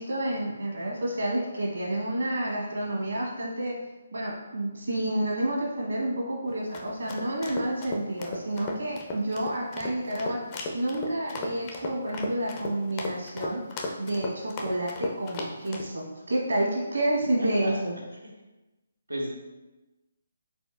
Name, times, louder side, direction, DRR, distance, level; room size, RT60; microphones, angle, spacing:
voice 1, 0.0-3.8 4.1-10.4 10.7-13.6 14.0-18.0, right 1 dB, 70° right, -3 dB, 1.4 m, -29 dB
sound 1, 6.5-15.9, left 2 dB, 25° left, 0.5 m, -36 dB
voice 2, 17.4-17.7 19.1-19.4, equal, 90° right, -2 dB, 0.9 m, -34 dB
4.3 x 4.0 x 2.5 m, 1.1 s
figure-of-eight pair, 140°, 0 cm